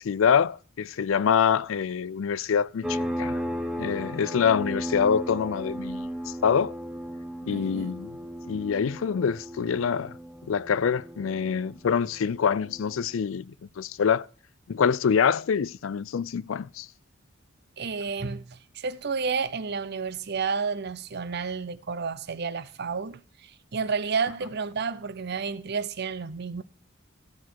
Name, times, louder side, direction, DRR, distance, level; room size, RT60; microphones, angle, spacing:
voice 1, 0.0-3.4 3.8-6.7 7.4-8.1 8.5-10.1 10.5-14.3 14.7-16.9, left 7 dB, 75° left, 0.4 m, -25 dB
sound 1, 2.8-13.2, equal, ahead, 1.0 m, -35 dB
voice 2, 7.5-8.0 17.8-26.6, right 5 dB, 55° right, 0.6 m, -31 dB
14.0 x 6.1 x 4.6 m
head